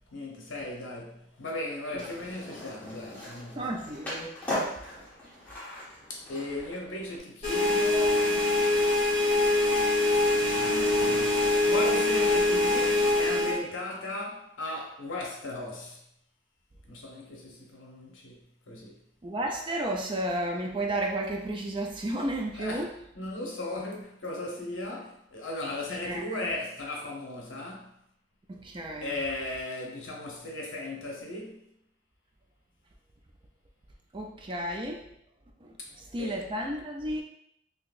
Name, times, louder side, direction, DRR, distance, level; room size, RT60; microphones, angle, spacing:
voice 1, 0.0-3.7 6.1-8.3 8.7-8.9 10.2-16.0 16.9-19.0 22.5-22.9 23.1-28.0 29.0-31.6 35.8-35.9 36.2-36.4, left 2 dB, 75° left, 0.8 m, -37 dB
Skateboard, 1.9-7.2, left 1 dB, 10° left, 1.0 m, -38 dB
voice 2, 3.5-4.3 19.2-22.9 26.0-26.4 28.5-29.1 34.1-35.1 35.6-37.2, right 1 dB, 25° right, 0.3 m, -32 dB
sound 1, 7.4-13.6, left 2 dB, 30° left, 1.5 m, -24 dB
3.8 x 2.8 x 2.4 m
head